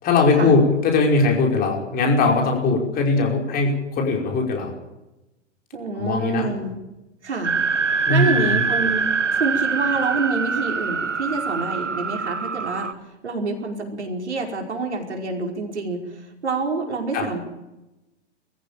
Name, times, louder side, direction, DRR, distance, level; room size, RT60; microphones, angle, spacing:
voice 1, 0.0-4.7 6.0-6.5 8.0-8.6 17.1-17.2, left 3 dB, 25° left, 1 dB, 5.3 m, -20 dB
voice 2, 5.7-6.7 7.2-7.5 8.1-9.0 9.4-12.9 13.2-17.4, right 3 dB, 70° right, 2 dB, 5.2 m, -27 dB
sound 1, 7.4-12.9, right 5 dB, 85° right, 0.8 m, -24 dB
23.5 x 15.0 x 9.1 m, 0.97 s
figure-of-eight pair, 105°, 35 cm